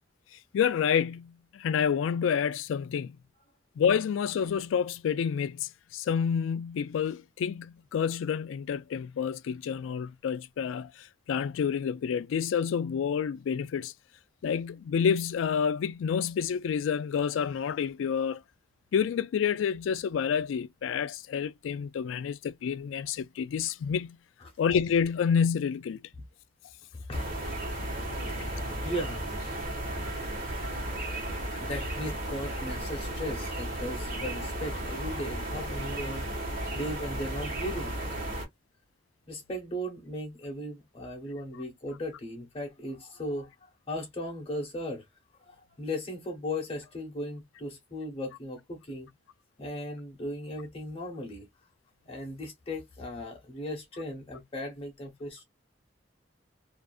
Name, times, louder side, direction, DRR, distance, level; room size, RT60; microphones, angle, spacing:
voice 1, 0.5-3.2 3.8-13.9 14.4-18.4 18.9-24.2 24.6-26.0, left 7 dB, 85° left, 0.3 m, -29 dB
voice 2, 26.9-27.5 28.4-28.5 28.8-29.2 29.6-29.7 30.2-30.6 30.9-31.0 31.5-36.3 36.7-37.9 39.3-45.0 45.4-49.1 49.6-51.5 52.1-55.4, left 1 dB, 30° left, 0.9 m, -37 dB
sound 1, 27.1-38.4, right 1 dB, 50° right, 1.2 m, -34 dB
2.5 x 2.4 x 2.2 m
head